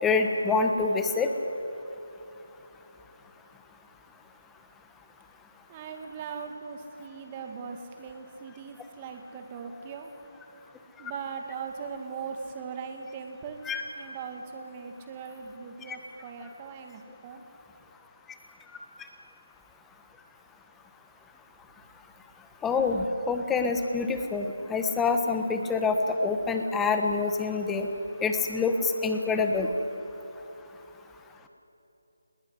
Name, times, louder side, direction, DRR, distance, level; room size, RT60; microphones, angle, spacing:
voice 1, 0.0-1.3 13.7-13.8 15.9-16.0 22.6-27.9 28.2-29.7, left 4 dB, 10° left, 5 dB, 1.3 m, -26 dB
voice 2, 5.7-10.1 11.0-13.6 14.0-17.4, right 5 dB, 25° right, 4 dB, 2.2 m, -40 dB
20.5 x 18.5 x 9.8 m, 3.0 s
figure-of-eight pair, 155°, 0 cm